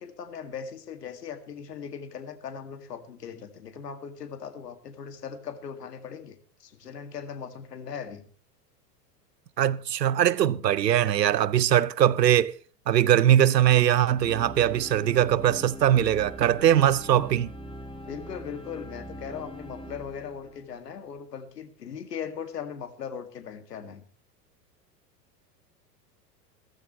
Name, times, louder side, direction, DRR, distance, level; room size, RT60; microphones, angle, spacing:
voice 1, 0.0-8.2 18.1-24.0, left 7 dB, 75° left, 2.2 m, -39 dB
voice 2, 9.6-12.5 12.9-17.5, right 11 dB, 85° right, 0.7 m, -21 dB
sound 1, 14.1-21.2, equal, 10° left, 2.6 m, -42 dB
16.5 x 14.5 x 3.1 m
figure-of-eight pair, 90°, 48 cm